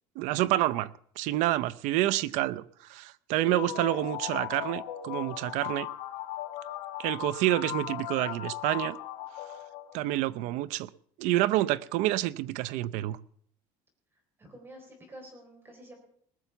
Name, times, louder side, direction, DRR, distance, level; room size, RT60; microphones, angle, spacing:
voice 1, 0.2-0.9 1.2-5.9 7.0-9.0 9.9-10.9 11.2-13.2, right 16 dB, 75° right, 0.6 m, -28 dB
sound 1, 3.4-10.2, left 13 dB, 85° left, 1.3 m, -37 dB
voice 2, 3.6-4.0 14.4-16.0, right 1 dB, 20° right, 4.2 m, -49 dB
20.0 x 7.0 x 6.8 m
cardioid pair, 145°, 13 cm